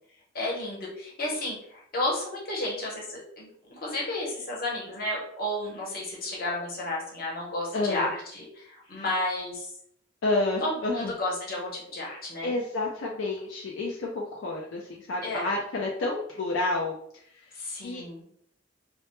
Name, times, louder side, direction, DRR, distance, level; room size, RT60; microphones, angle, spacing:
voice 1, 0.3-9.7 10.6-12.5 15.2-15.5 17.5-18.2, left 1 dB, 50° left, -3 dB, 0.8 m, -32 dB
voice 2, 7.7-8.1 8.9-9.0 10.2-11.1 12.4-17.0 17.8-18.1, left 2 dB, 85° left, -1 dB, 0.4 m, -29 dB
2.1 x 2.0 x 2.9 m, 0.69 s
head